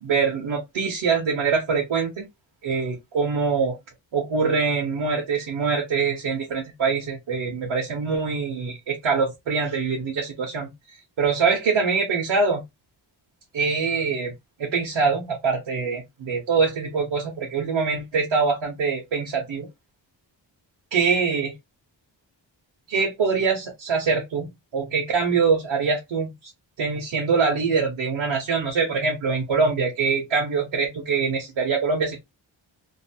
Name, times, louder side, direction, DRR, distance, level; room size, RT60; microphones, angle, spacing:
voice 1, 0.0-2.3 2.6-3.8 4.1-10.7 11.2-12.6 13.5-14.3 14.6-19.7 20.9-21.5 22.9-26.3 26.8-32.2, right 5 dB, 75° right, 1.1 m, -24 dB
2.9 x 2.2 x 2.7 m
cardioid pair, 65°, 46 cm